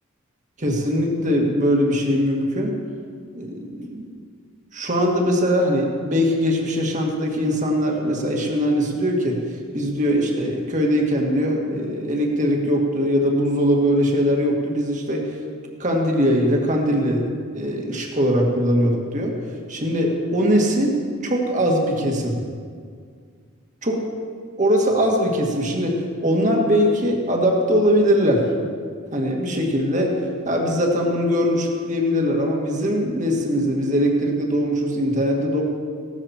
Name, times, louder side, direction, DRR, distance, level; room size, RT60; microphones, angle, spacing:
voice 1, 0.6-2.8 3.3-4.1 4.7-9.4 9.7-15.3 15.8-17.3 17.5-19.3 19.7-22.4 23.8-24.0 24.6-28.5 29.1-30.2 30.5-35.6, equal, 35° right, 0 dB, 2.0 m, -21 dB
17.0 x 13.0 x 4.5 m, 2.1 s
head